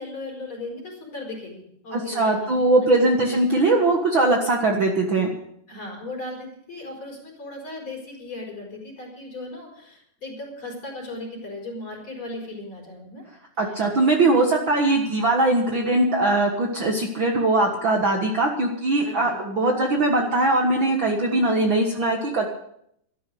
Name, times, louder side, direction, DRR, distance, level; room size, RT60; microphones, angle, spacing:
voice 1, 0.0-2.7 3.1-3.4 5.7-13.2 13.7-14.0 19.0-19.4, left 2 dB, 30° left, 0 dB, 5.3 m, -37 dB
voice 2, 1.9-5.3 13.6-22.5, right 2 dB, 85° right, 1 dB, 1.0 m, -21 dB
14.0 x 11.5 x 6.6 m, 0.72 s
omnidirectional pair, 4.8 m